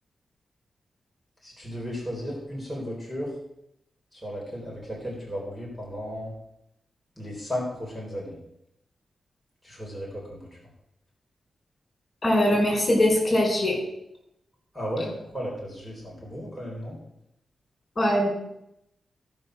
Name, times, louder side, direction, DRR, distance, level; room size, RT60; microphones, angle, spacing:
voice 1, 1.4-3.3 4.1-6.3 7.2-8.4 9.6-10.5 14.7-17.0, equal, 5° right, -4 dB, 4.0 m, -34 dB
voice 2, 12.2-13.8 18.0-18.3, left 1 dB, 35° left, -1 dB, 4.9 m, -21 dB
16.0 x 5.7 x 6.3 m, 0.81 s
wide cardioid pair, 120°, 0 cm